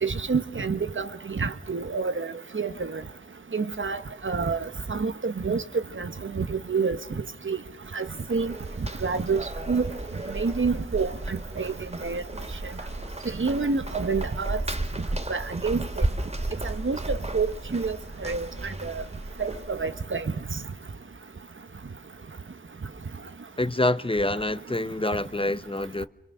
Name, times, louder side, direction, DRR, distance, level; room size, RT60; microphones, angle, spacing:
voice 1, 0.0-2.3 2.5-3.0 3.5-4.6 4.9-5.6 6.0-7.0 7.4-7.6 7.9-8.5 9.0-9.8 10.3-11.7 12.0-12.2 13.4-14.6 15.3-15.8 16.6-18.0 18.2-18.5 18.8-18.9 19.4-20.2, right 4 dB, 80° right, 1.4 m, -28 dB
sound 1, 7.9-20.0, right 1 dB, 30° right, 2.5 m, -34 dB
voice 2, 23.6-26.1, left 2 dB, 25° left, 0.9 m, -26 dB
28.0 x 26.0 x 6.5 m
wide cardioid pair, 60°, 20 cm